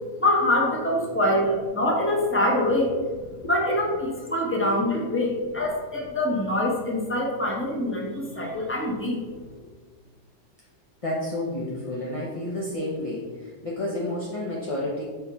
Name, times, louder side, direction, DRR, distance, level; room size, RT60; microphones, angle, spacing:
voice 1, 0.2-2.9 3.5-9.2, left 1 dB, 10° left, -2 dB, 1.0 m, -24 dB
voice 2, 11.0-15.0, left 1 dB, 30° left, -5 dB, 0.6 m, -30 dB
6.9 x 3.2 x 5.5 m, 1.4 s
omnidirectional pair, 1.9 m